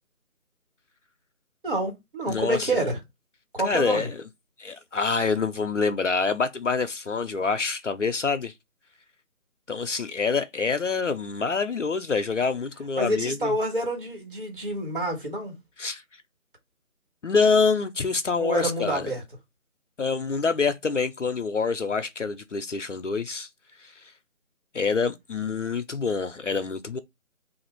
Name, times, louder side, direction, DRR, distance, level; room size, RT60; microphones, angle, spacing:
voice 1, 1.6-3.0 3.5-4.1 13.0-15.6 18.4-19.2, right 1 dB, 40° right, 1.5 m, -28 dB
voice 2, 2.3-2.7 3.6-4.2 4.6-8.5 9.7-13.5 15.8-16.0 17.2-19.1 20.0-23.5 23.8-23.9 24.7-27.0, left 4 dB, 60° left, 0.5 m, -26 dB
2.9 x 2.5 x 4.3 m
figure-of-eight pair, 170°, 43 cm